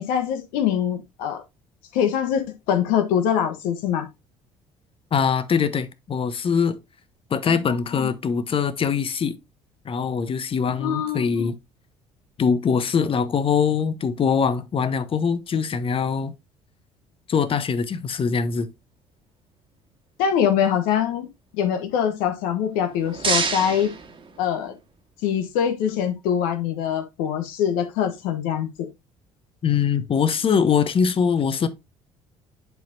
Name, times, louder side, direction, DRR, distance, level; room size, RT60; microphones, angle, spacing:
voice 1, 0.0-1.4 1.9-4.1 7.5-8.1 10.8-11.5 20.2-21.3 21.5-23.9 24.4-24.7 25.2-28.9, left 8 dB, 65° left, 1.1 m, -24 dB
voice 2, 5.1-6.8 7.3-9.4 9.8-11.6 12.4-16.3 17.3-18.7 29.6-31.7, left 6 dB, 35° left, 0.9 m, -22 dB
sound 1, 22.7-24.9, right 5 dB, 35° right, 1.6 m, -28 dB
10.5 x 4.3 x 2.7 m
hypercardioid pair, 55°, 15 cm